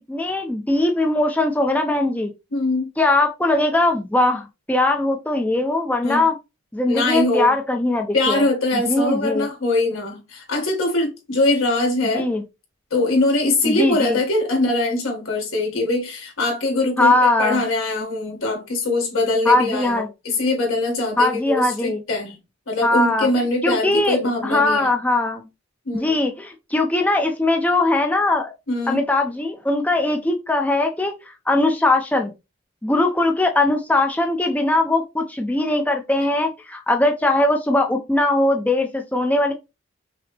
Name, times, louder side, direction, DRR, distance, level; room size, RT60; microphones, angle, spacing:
voice 1, 0.1-2.3 3.0-6.4 6.7-8.4 8.7-9.5 12.1-12.4 13.6-14.2 17.0-17.6 19.5-20.1 21.2-22.0 22.8-23.3 23.6-24.2 24.4-25.4 25.9-28.5 28.9-32.3 32.8-39.5, left 2 dB, 5° left, 0.4 m, -20 dB
voice 2, 2.5-2.9 6.0-6.2 6.9-7.6 8.1-12.3 12.9-22.4 22.7-24.9 25.9-26.2 28.7-29.0, left 2 dB, 85° left, 1.7 m, -22 dB
5.7 x 2.0 x 3.2 m
head